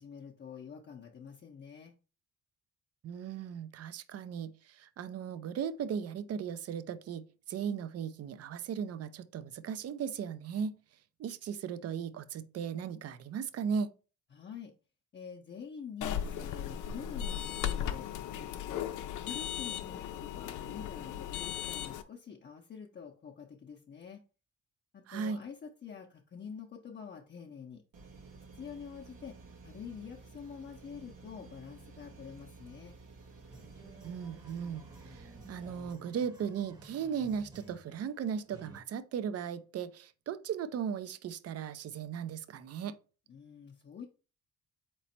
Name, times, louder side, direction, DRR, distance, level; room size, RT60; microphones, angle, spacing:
voice 1, 0.0-1.9 14.3-14.7 15.1-18.8 19.2-24.2 24.9-27.8 28.5-29.4 29.6-33.0 43.3-44.1, left 6 dB, 35° left, 0.6 m, -47 dB
voice 2, 3.0-10.8 11.2-13.9 25.1-25.4 34.0-43.0, right 7 dB, 55° right, 0.5 m, -37 dB
sound 1, 16.0-22.0, left 10 dB, 80° left, 0.5 m, -37 dB
sound 2, 27.9-35.9, right 4 dB, 85° right, 1.3 m, -53 dB
sound 3, 33.5-38.8, right 2 dB, 15° right, 0.9 m, -54 dB
4.1 x 3.0 x 4.3 m
cardioid pair, 90°, 30 cm